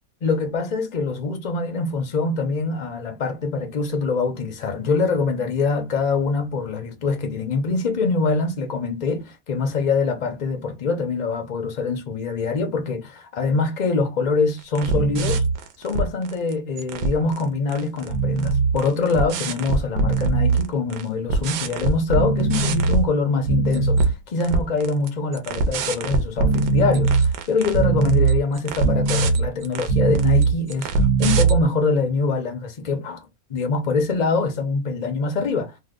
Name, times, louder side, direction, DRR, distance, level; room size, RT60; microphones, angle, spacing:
voice 1, 0.2-15.4 15.8-35.8, left 4 dB, 70° left, 0.4 m, -24 dB
sound 1, 14.8-16.5 16.8-17.4 17.7-21.0 21.3-23.1 23.4-24.1 24.4-31.6, right 4 dB, 85° right, 1.1 m, -21 dB
2.8 x 2.0 x 3.5 m
omnidirectional pair, 1.5 m